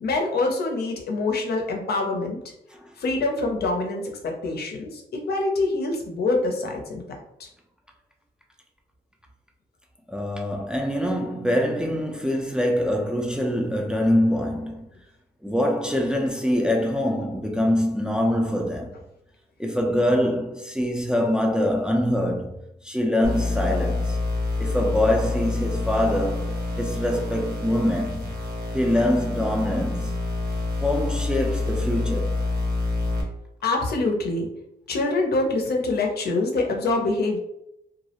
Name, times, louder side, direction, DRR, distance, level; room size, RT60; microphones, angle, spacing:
voice 1, 0.0-2.4 3.0-7.0 7.4-7.5 33.6-34.5 34.9-37.4, left 2 dB, 65° left, 0.5 m, -25 dB
voice 2, 10.1-14.9 15.4-19.0 19.6-22.5 22.8-24.2 24.6-28.4 28.7-30.2 30.8-32.5, left 1 dB, 5° right, 0.4 m, -24 dB
sound 1, 23.2-33.2, left 2 dB, 65° right, 0.8 m, -27 dB
2.3 x 2.0 x 2.8 m
cardioid pair, 85°, 17 cm